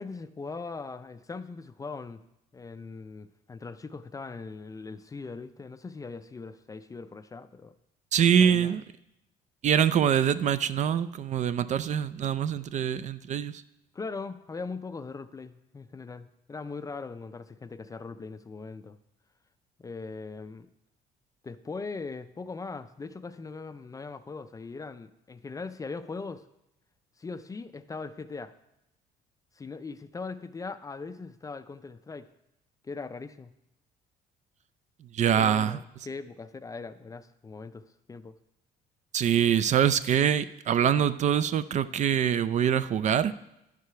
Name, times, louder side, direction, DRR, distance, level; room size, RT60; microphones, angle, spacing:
voice 1, 0.0-2.2 2.5-7.7 8.4-8.8 13.9-19.0 19.8-20.7 21.4-26.5 27.2-28.5 29.6-32.3 32.8-33.5 35.4-38.4, left 4 dB, 20° left, 12 dB, 0.4 m, -40 dB
voice 2, 8.1-8.8 9.6-13.5 35.1-35.8 39.1-43.3, right 9 dB, 45° right, 14 dB, 0.4 m, -24 dB
10.5 x 4.8 x 5.7 m, 0.87 s
cardioid pair, 110°, 17 cm